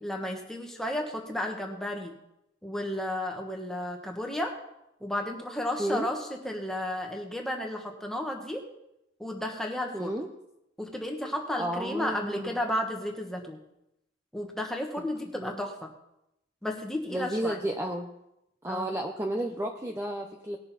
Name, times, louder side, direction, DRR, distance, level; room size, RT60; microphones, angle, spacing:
voice 1, 0.0-2.1 2.6-4.5 5.0-8.7 9.2-10.1 10.8-13.6 14.3-15.9 16.6-17.6 18.7-18.9, left 1 dB, ahead, 1 dB, 1.4 m, -33 dB
voice 2, 9.9-10.3 11.6-12.6 15.3-15.6 17.1-18.1 18.6-20.6, right 1 dB, 15° right, 2 dB, 0.7 m, -32 dB
19.0 x 6.7 x 4.2 m, 0.85 s
head